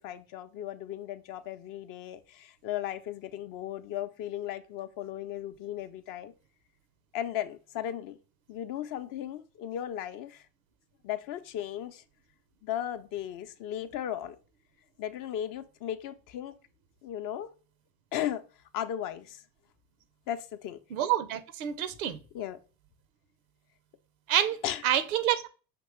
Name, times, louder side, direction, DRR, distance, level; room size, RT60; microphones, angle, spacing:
voice 1, 0.0-6.3 7.1-8.2 8.5-10.4 11.0-12.0 12.6-14.4 15.0-16.6 17.0-17.5 18.1-18.4 18.7-19.4 20.3-20.8 22.3-22.6 24.6-24.8, left 11 dB, 50° left, 0.6 m, -36 dB
voice 2, 20.9-22.2 24.3-24.6 24.8-25.5, right 11 dB, 75° right, 0.7 m, -27 dB
5.2 x 2.9 x 3.1 m
hypercardioid pair, 70°, 43 cm